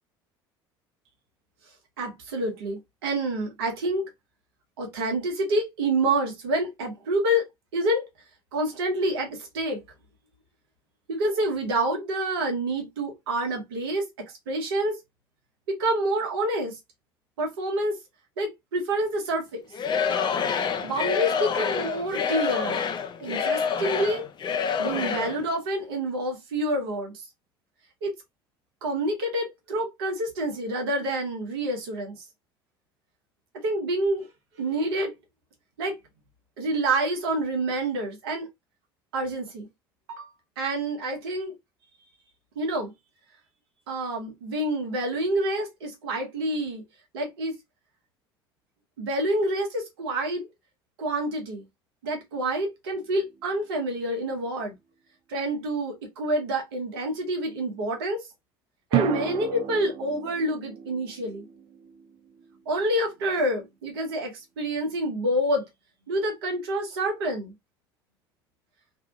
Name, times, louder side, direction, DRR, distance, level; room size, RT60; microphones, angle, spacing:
voice 1, 2.0-4.1 4.8-8.0 8.5-9.8 11.1-15.0 15.7-16.8 17.4-18.0 18.4-19.7 20.8-22.8 23.2-24.3 24.8-27.1 28.0-28.1 28.8-32.2 33.6-34.3 34.6-35.1 35.8-36.0 36.6-38.5 39.1-39.7 40.1-40.3 40.6-41.5 42.6-42.9 43.9-46.8 47.1-47.5 49.0-50.5 51.0-51.6 52.0-54.7 55.3-58.2 58.9-61.5 62.7-65.7 66.1-67.5, right 1 dB, 75° right, 1.0 m, -27 dB
Singing / Crowd, 19.7-25.4, left 6 dB, 35° left, 0.5 m, -27 dB
sound 1, 52.9-54.1 58.9-63.2, right 9 dB, 45° right, 0.6 m, -33 dB
2.7 x 2.4 x 2.4 m
hypercardioid pair, 65°, 13 cm